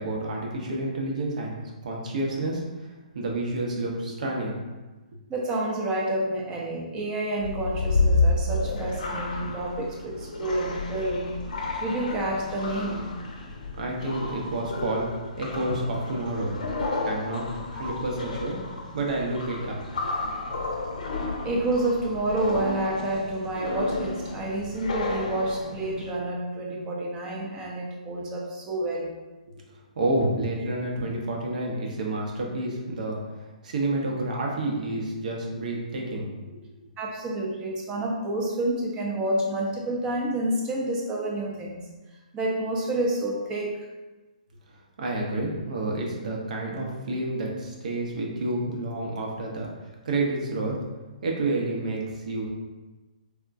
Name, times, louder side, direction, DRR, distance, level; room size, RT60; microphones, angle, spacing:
voice 1, 0.0-2.9 3.1-4.6 13.8-15.1 15.4-16.5 17.0-18.6 18.9-19.8 20.0-20.1 29.5-29.6 29.9-33.2 33.6-36.6 45.0-49.7 50.0-50.8 51.2-52.5, right 2 dB, 60° right, -1 dB, 0.8 m, -29 dB
voice 2, 5.3-11.3 11.8-13.1 17.8-18.0 21.4-29.2 37.0-41.8 42.3-43.7, right 1 dB, 20° right, -2 dB, 0.5 m, -29 dB
sound 1, 7.4-26.1, left 3 dB, 70° left, 0.5 m, -31 dB
3.5 x 2.2 x 2.6 m, 1.2 s
hypercardioid pair, 145°, 4 cm